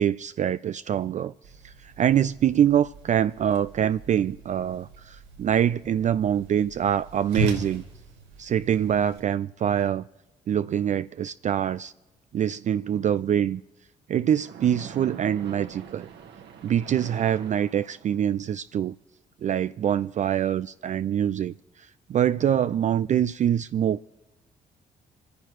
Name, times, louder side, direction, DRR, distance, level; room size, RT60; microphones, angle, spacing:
voice 1, 0.0-1.3 1.6-7.8 8.4-10.0 10.5-11.9 12.3-13.6 14.1-16.1 16.6-19.0 19.4-24.1, right 9 dB, 35° right, 0.4 m, -24 dB
Whoosh swoosh swish, 1.4-9.2, right 4 dB, 80° right, 4.7 m, -37 dB
Splash splatter, 14.4-18.4, right 7 dB, 60° right, 1.4 m, -43 dB
26.5 x 10.0 x 3.2 m
figure-of-eight pair, 45°, 21 cm